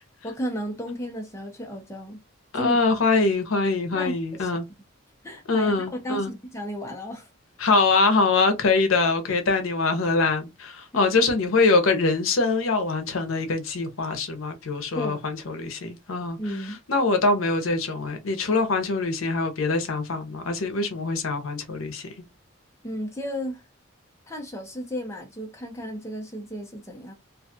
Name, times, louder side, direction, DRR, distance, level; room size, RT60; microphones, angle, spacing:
voice 1, 0.2-2.2 2.5-2.8 3.9-4.6 5.2-7.3 10.9-11.1 15.0-15.2 16.4-16.8 22.8-23.6 24.3-27.1, equal, 15° left, 0.6 m, -33 dB
voice 2, 2.5-4.7 5.5-6.3 7.6-16.4 16.9-22.1, left 3 dB, 80° left, 0.7 m, -23 dB
2.5 x 2.3 x 2.7 m
head